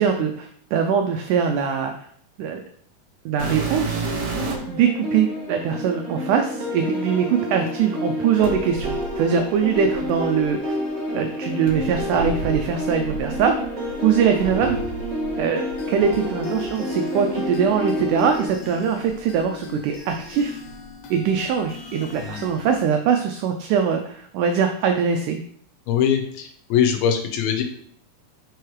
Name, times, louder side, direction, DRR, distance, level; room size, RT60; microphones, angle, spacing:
voice 1, 0.0-1.9 2.4-2.6 3.3-4.1 4.7-10.7 11.1-13.6 14.0-14.8 15.4-20.6 21.1-25.4, right 7 dB, 85° right, 5 dB, 1.8 m, -22 dB
sound 1, 3.4-4.8 5.6-5.7 8.4-10.5 11.6-15.4 15.7-16.7 17.5-17.6 18.2-18.3 19.0-20.1 20.4-20.9 22.2-22.3, right 4 dB, 60° right, 1.7 m, -32 dB
sound 2, 4.4-18.5, left 1 dB, 40° right, 0.9 m, -29 dB
sound 3, 15.8-22.8, left 6 dB, 65° left, 2.1 m, -40 dB
voice 2, 25.9-27.6, left 8 dB, 85° left, 4 dB, 2.8 m, -22 dB
5.6 x 4.7 x 4.6 m, 0.63 s
omnidirectional pair, 4.2 m